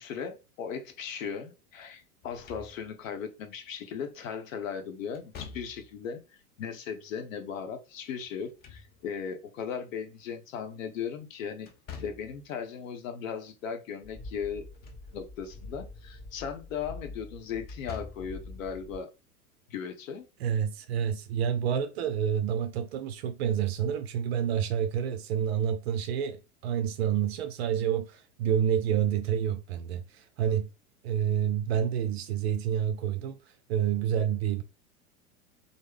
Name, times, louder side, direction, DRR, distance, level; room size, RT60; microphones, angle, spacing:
voice 1, 0.0-6.2 6.6-11.7 12.0-14.7 15.1-19.1 19.7-20.3, left 7 dB, 60° left, 0.8 m, -37 dB
Slam / Thump thud, 2.2-3.1 5.1-6.0 8.3-9.3 11.7-12.5 14.5-15.1 15.5-15.6 17.6-18.4, left 6 dB, 20° left, 0.5 m, -46 dB
sound 1, 14.0-19.0, left 2 dB, 45° left, 1.2 m, -45 dB
voice 2, 20.4-30.7 31.0-34.6, right 9 dB, 45° right, 0.4 m, -28 dB
3.2 x 2.0 x 3.4 m
figure-of-eight pair, 90°, 44 cm